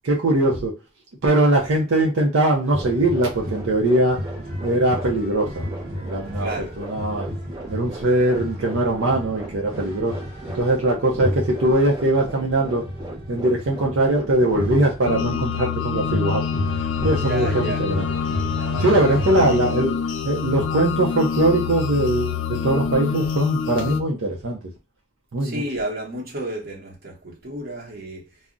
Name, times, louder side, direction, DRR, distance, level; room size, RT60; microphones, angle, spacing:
voice 1, 0.0-0.7 1.2-4.2 4.6-6.5 6.8-7.3 7.7-10.2 10.5-12.8 13.3-16.4 16.8-18.0 18.8-20.0 20.2-24.6 25.3-25.6, right 1 dB, 80° right, 0.5 m, -21 dB
sound 1, 2.6-15.5 16.1-19.5, left 1 dB, 5° right, 0.9 m, -32 dB
sound 2, 2.8-14.9, right 1 dB, 20° right, 0.5 m, -38 dB
voice 2, 6.3-6.8 17.1-17.8 18.5-19.8 25.4-28.3, right 1 dB, 50° right, 1.0 m, -32 dB
sound 3, 15.0-24.0, left 7 dB, 75° left, 0.4 m, -26 dB
2.3 x 2.0 x 3.6 m
head